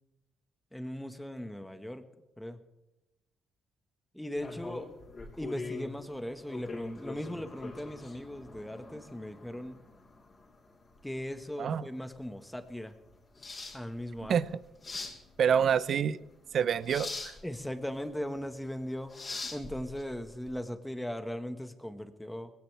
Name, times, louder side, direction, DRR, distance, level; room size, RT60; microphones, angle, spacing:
voice 1, 0.7-2.0 2.4-2.6 4.1-4.9 5.4-9.8 11.0-12.9 13.7-14.4 17.4-19.2 19.5-22.5, equal, 5° left, 7 dB, 1.6 m, -38 dB
sound 1, 4.4-20.6, left 3 dB, 35° left, 3.8 m, -44 dB
voice 2, 15.4-16.2 16.5-17.3, right 7 dB, 60° right, 16 dB, 0.7 m, -27 dB
19.5 x 17.5 x 3.5 m, 0.99 s
cardioid pair, 90°, 0 cm